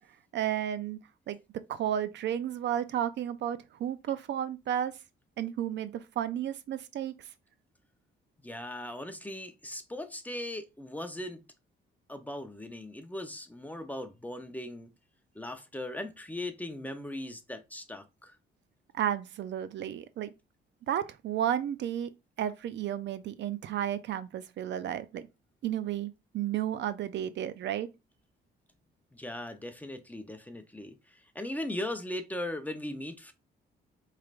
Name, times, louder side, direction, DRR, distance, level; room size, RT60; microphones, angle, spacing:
voice 1, 0.3-1.0 1.3-1.4 1.7-4.9 5.4-7.3 18.9-20.3 20.9-22.1 22.4-25.3 25.6-27.9, right 10 dB, 65° right, 0.5 m, -32 dB
voice 2, 8.4-11.4 12.1-14.9 15.3-18.4 29.1-33.3, left 1 dB, 10° left, 0.7 m, -39 dB
4.7 x 3.3 x 2.5 m
cardioid pair, 90°, 20 cm